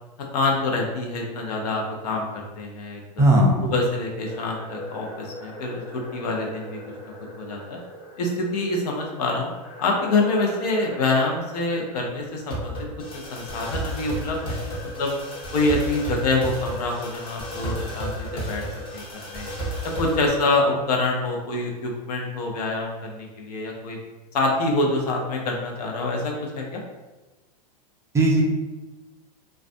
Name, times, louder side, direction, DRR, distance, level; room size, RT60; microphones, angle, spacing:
voice 1, 0.3-3.2 3.6-6.8 7.4-7.8 8.2-9.5 9.8-12.8 13.1-15.2 15.5-18.6 18.9-19.5 19.8-24.0 24.3-26.8, left 2 dB, 70° left, 0 dB, 0.7 m, -26 dB
voice 2, 3.2-3.7 28.1-28.4, right 1 dB, 15° right, -2 dB, 0.4 m, -17 dB
sound 1, 4.3-20.3, equal, 25° left, 0.8 m, -35 dB
2.4 x 2.2 x 2.5 m, 1.2 s
hypercardioid pair, 115°, 21 cm